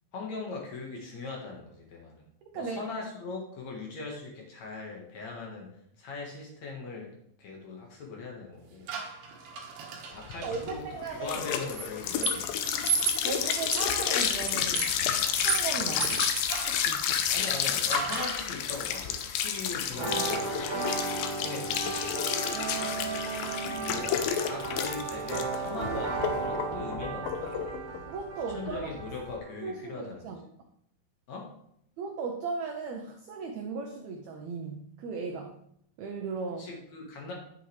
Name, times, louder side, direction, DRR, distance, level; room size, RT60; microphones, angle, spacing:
voice 1, 0.1-2.2 2.5-5.7 6.0-7.1 7.4-8.9 10.1-12.6 17.3-20.6 21.4-22.0 24.2-27.8 28.5-30.3 31.3-31.5 36.6-37.3, left 3 dB, 60° left, -1 dB, 2.4 m, -40 dB
voice 2, 2.4-2.8 10.4-11.4 13.2-14.9 15.3-16.2 16.7-17.0 22.5-24.3 28.1-28.9 29.6-30.5 32.0-35.6 36.0-36.7, right 5 dB, 85° right, 4 dB, 1.5 m, -37 dB
sound 1, 8.9-10.7 11.7-16.9 17.9-18.5, right 5 dB, 65° right, 2.7 m, -34 dB
sound 2, 10.3-29.3, left 8 dB, 80° left, 2.4 m, -31 dB
sound 3, 19.9-29.5, right 4 dB, 45° right, 3.4 m, -35 dB
10.0 x 8.2 x 3.2 m, 0.71 s
omnidirectional pair, 4.2 m